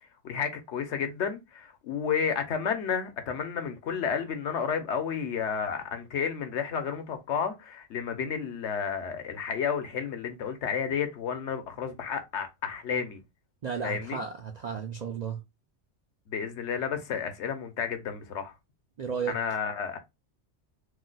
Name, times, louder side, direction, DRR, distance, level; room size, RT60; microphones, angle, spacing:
voice 1, 0.2-13.2 13.8-14.2 16.3-18.5 19.3-20.0, left 7 dB, 70° left, 1.0 m, -31 dB
voice 2, 13.6-15.4 19.0-19.4, right 6 dB, 60° right, 0.4 m, -33 dB
2.7 x 2.1 x 3.8 m
omnidirectional pair, 1.2 m